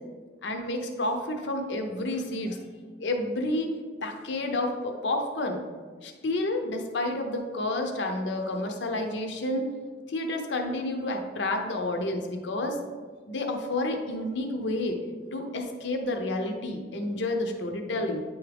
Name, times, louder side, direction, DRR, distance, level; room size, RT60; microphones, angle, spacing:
voice 1, 0.4-2.6 3.0-3.7 4.0-5.6 6.0-9.7 10.1-12.8 13.3-15.0 15.3-18.2, left 1 dB, 70° left, 4 dB, 0.7 m, -30 dB
9.3 x 3.5 x 3.4 m, 1.5 s
head